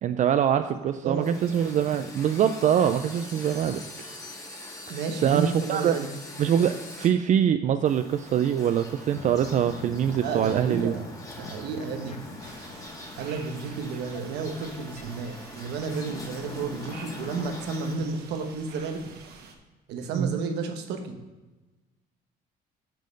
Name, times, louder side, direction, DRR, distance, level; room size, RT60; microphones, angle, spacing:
voice 1, 0.0-3.8 4.9-5.9 6.4-10.9 20.1-20.4, right 9 dB, 45° right, 9 dB, 0.4 m, -24 dB
sound 1, 1.2-7.1 7.9-18.0, left 1 dB, 20° left, 1.7 m, -43 dB
voice 2, 4.9-6.1 10.2-11.0 11.4-12.4 13.2-19.0 19.9-21.2, right 5 dB, 85° right, 6 dB, 1.1 m, -32 dB
sound 2, 9.1-17.7, left 5 dB, 45° left, 0.7 m, -44 dB
sound 3, 12.4-19.5, right 5 dB, 65° right, 1.2 m, -48 dB
7.5 x 5.4 x 5.3 m, 1.2 s
cardioid pair, 110°, 17 cm